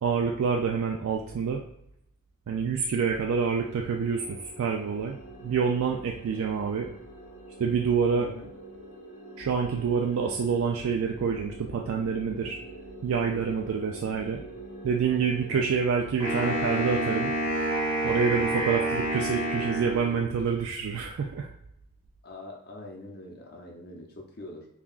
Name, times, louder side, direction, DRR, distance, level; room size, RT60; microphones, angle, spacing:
voice 1, 0.0-1.6 2.5-6.9 7.6-8.3 9.4-12.6 13.0-14.4 14.8-17.3 18.0-21.5, right 6 dB, 70° right, 1 dB, 0.3 m, -27 dB
sound 1, 3.0-15.7, right 2 dB, 90° left, 1.0 m, -46 dB
voice 2, 6.3-6.6 8.2-8.5 15.5-15.8 22.2-24.7, left 1 dB, 45° left, 0 dB, 0.7 m, -44 dB
Wind instrument woodwind instrument, 16.2-20.4, right 1 dB, 20° right, 1.3 m, -28 dB
5.5 x 2.3 x 2.4 m, 0.76 s
head